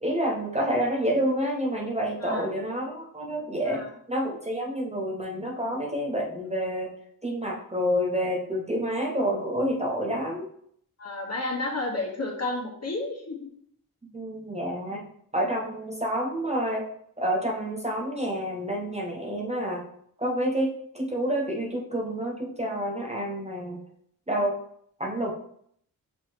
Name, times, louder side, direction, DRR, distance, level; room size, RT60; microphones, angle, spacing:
voice 1, 0.0-6.9 7.2-10.5 14.1-15.0 15.3-16.9 17.2-19.8 20.2-23.8 24.3-24.5 25.0-25.3, equal, 20° right, -1 dB, 0.7 m, -28 dB
voice 2, 11.0-13.3, left 2 dB, 45° left, -2 dB, 1.2 m, -31 dB
6.2 x 2.9 x 2.9 m, 0.67 s
wide cardioid pair, 80°, 34 cm